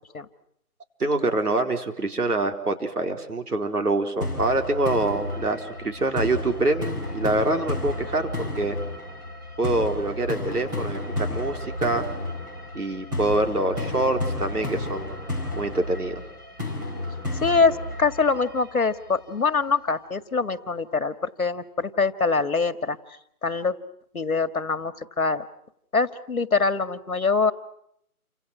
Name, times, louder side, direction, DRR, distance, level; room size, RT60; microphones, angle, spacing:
voice 1, 1.0-8.3 8.6-8.8 9.6-12.0 12.7-15.2 15.5-16.2, right 2 dB, 85° right, 5 dB, 4.6 m, -25 dB
sound 1, 4.2-19.2, left 2 dB, 15° right, 4.5 m, -32 dB
voice 2, 17.4-23.0 23.4-23.7 24.1-25.5 25.9-27.5, left 4 dB, 70° left, 11 dB, 2.1 m, -24 dB
29.5 x 26.5 x 6.2 m, 0.71 s
figure-of-eight pair, 180°, 44 cm